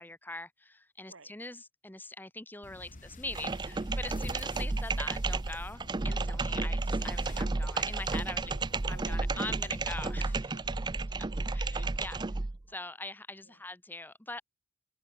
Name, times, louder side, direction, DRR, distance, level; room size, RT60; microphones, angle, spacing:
voice 1, 0.0-8.5 8.9-10.6 11.5-12.2 12.7-14.4, left 2 dB, 10° left, 1.1 m, -43 dB
sound 1, 2.6-10.4, left 2 dB, 40° left, 1.3 m, -49 dB
sound 2, 3.3-12.6, right 3 dB, 20° right, 0.5 m, -32 dB
voice 2, 8.4-10.0 10.5-12.0 12.7-12.9 13.4-13.6, right 3 dB, 90° right, 3.5 m, -56 dB
head